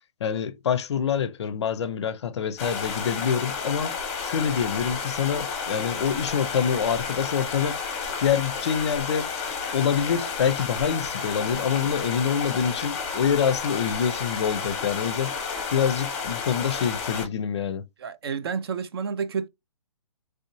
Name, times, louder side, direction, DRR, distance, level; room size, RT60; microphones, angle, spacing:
voice 1, 0.2-3.9 4.2-7.8 8.2-9.3 9.7-15.3 15.7-17.8, left 7 dB, 50° left, 0.4 m, -26 dB
sound 1, 2.6-17.3, left 5 dB, 20° left, 0.8 m, -31 dB
voice 2, 18.0-19.5, right 6 dB, 45° right, 0.4 m, -30 dB
3.2 x 2.6 x 2.9 m
hypercardioid pair, 150°, 19 cm